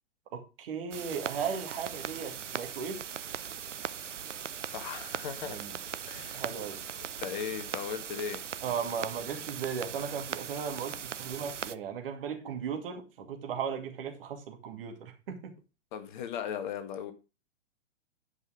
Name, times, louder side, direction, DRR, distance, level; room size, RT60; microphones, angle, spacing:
voice 1, 0.3-3.0 5.5-5.7 6.3-6.8 8.6-15.6, right 6 dB, 50° right, 4 dB, 2.4 m, -36 dB
sound 1, 0.9-11.8, right 8 dB, 75° right, 0.7 m, -39 dB
voice 2, 4.7-5.6 6.1-6.4 7.2-8.4 15.9-17.1, left 8 dB, 40° left, 8 dB, 1.5 m, -37 dB
10.5 x 5.4 x 5.1 m, 0.30 s
figure-of-eight pair, 115°, 37 cm